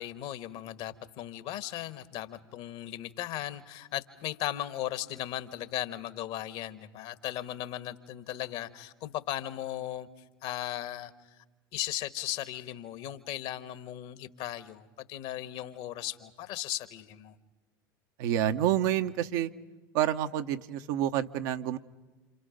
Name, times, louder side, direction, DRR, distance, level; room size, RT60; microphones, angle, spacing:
voice 1, 0.0-10.1 10.4-11.1 11.7-17.3, left 13 dB, 55° left, 11 dB, 1.5 m, -37 dB
voice 2, 18.2-19.5 19.9-21.8, right 11 dB, 60° right, 8 dB, 1.0 m, -28 dB
27.5 x 27.5 x 5.3 m, 1.2 s
figure-of-eight pair, 75°, 12 cm